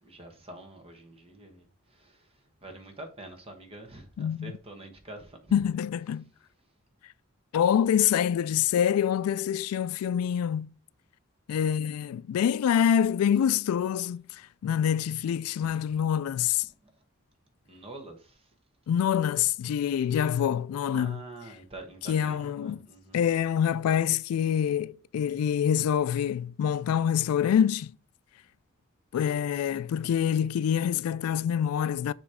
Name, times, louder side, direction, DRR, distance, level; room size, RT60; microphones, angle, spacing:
voice 1, 0.0-1.7 1.9-2.3 2.6-5.6 17.6-18.4 20.9-23.2, right 2 dB, 25° right, 1.2 m, -46 dB
voice 2, 4.2-4.5 5.5-6.3 7.5-10.7 11.5-16.6 18.9-21.2 22.0-22.8 23.1-27.9 29.1-32.1, left 9 dB, 90° left, 0.3 m, -26 dB
7.1 x 3.0 x 4.9 m
head